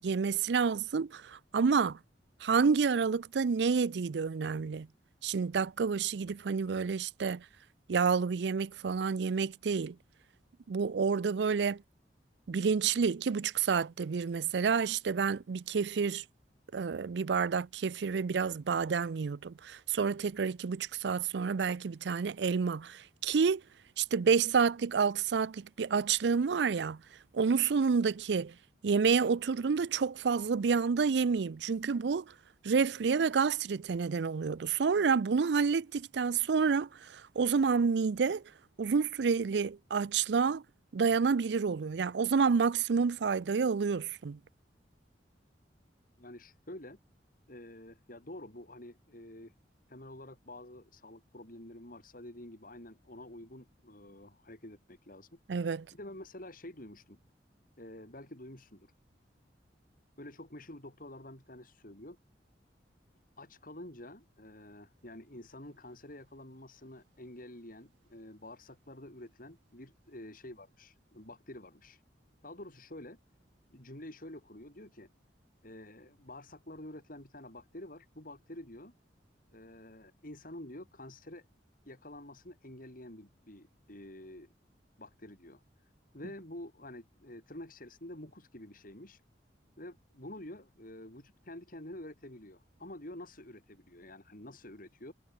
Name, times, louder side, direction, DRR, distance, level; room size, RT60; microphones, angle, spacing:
voice 1, 0.0-2.0 2.4-4.9 5.2-7.4 7.9-10.0 10.7-11.8 12.5-16.2 16.7-23.6 24.0-27.0 27.3-28.5 28.8-32.2 32.6-38.4 38.8-40.6 40.9-44.4 55.5-55.9, right 5 dB, 75° right, 0.5 m, -29 dB
voice 2, 46.2-47.0 47.5-49.5 49.9-55.4 55.9-57.2 57.8-58.9 60.2-62.2 63.4-72.0 72.4-73.2 73.7-75.1 75.6-78.9 79.5-81.4 81.8-84.5 85.0-89.2 89.8-95.1, left 1 dB, 50° left, 5.7 m, -48 dB
head